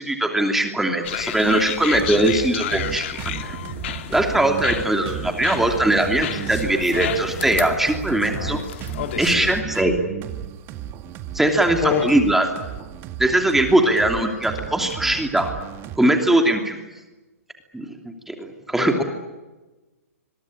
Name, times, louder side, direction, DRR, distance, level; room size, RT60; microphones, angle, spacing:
voice 1, 0.0-3.0 3.4-3.6 4.1-8.6 9.2-9.9 11.3-12.5 13.2-15.5 16.0-16.8 17.7-19.0, right 1 dB, 5° right, 4 dB, 2.9 m, -20 dB
sound 1, 1.0-9.6, left 11 dB, 50° left, 2.3 m, -32 dB
sound 2, 1.9-16.0, right 10 dB, 30° right, 1.9 m, -34 dB
voice 2, 11.8-12.1 18.7-19.0, left 8 dB, 25° left, 7 dB, 3.1 m, -25 dB
26.0 x 23.0 x 8.8 m, 1.2 s
figure-of-eight pair, 120°, 8 cm